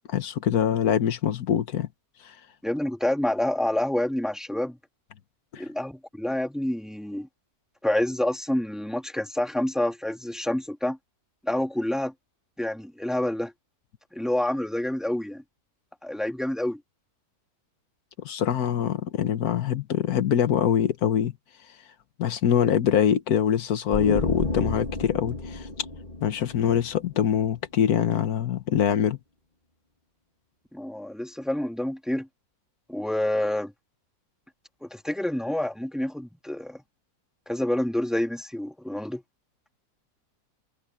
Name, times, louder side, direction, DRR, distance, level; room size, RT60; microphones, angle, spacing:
voice 1, 0.1-1.9 5.5-5.6 18.2-21.3 22.2-25.7 26.2-29.2, left 9 dB, 85° left, 1.5 m, -24 dB
voice 2, 2.6-4.8 5.6-7.3 7.8-11.0 11.4-12.1 12.6-13.5 14.1-15.4 16.0-16.8 30.7-32.3 32.9-33.7 34.8-36.8 37.5-39.2, left 1 dB, ahead, 2.1 m, -28 dB
sound 1, 23.9-27.5, left 2 dB, 35° left, 2.7 m, -31 dB
omnidirectional pair, 1.5 m